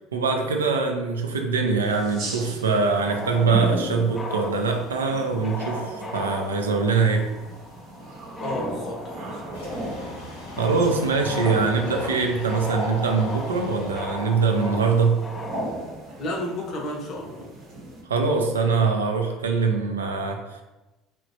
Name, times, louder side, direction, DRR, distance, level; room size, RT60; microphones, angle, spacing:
voice 1, 0.1-7.3 10.6-15.2 18.1-20.6, right 4 dB, 85° right, 3 dB, 0.3 m, -23 dB
sound 1, 1.8-18.0, right 1 dB, 60° right, 0.7 m, -37 dB
sound 2, 3.0-15.6, left 1 dB, 15° left, 0.7 m, -38 dB
voice 2, 8.4-9.4 16.2-17.4, left 1 dB, 50° left, 0 dB, 0.6 m, -32 dB
sound 3, 9.5-14.9, left 1 dB, 85° left, 0.8 m, -43 dB
3.0 x 2.1 x 2.6 m, 1.1 s
hypercardioid pair, 65°, 0 cm